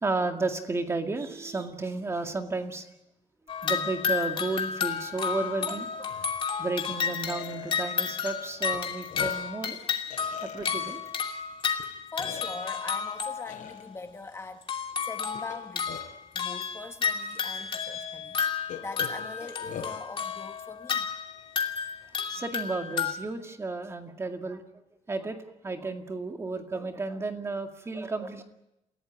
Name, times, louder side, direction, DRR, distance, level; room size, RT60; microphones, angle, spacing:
voice 1, 0.0-2.9 3.6-6.1 6.6-9.8 10.4-11.0 22.3-24.6 25.1-25.4 25.6-28.4, right 3 dB, 20° right, 5 dB, 2.1 m, -32 dB
sound 1, 3.5-13.7 14.6-23.1, left 6 dB, 40° left, 2.7 m, -32 dB
Burping eructation, 5.6-5.7 6.1-6.3 6.9-7.0 7.4-8.1 8.7-8.8 9.1-9.5 10.1-11.1 11.8-11.9 12.2-12.7 13.5-13.8 15.3-16.2 17.1-17.2 17.6-17.7 18.7-20.0, left 7 dB, 90° left, 4.8 m, -42 dB
voice 2, 12.1-16.0 16.3-21.1, left 3 dB, 20° left, 7 dB, 1.2 m, -42 dB
28.0 x 16.5 x 9.8 m, 0.88 s
wide cardioid pair, 165°, 13 cm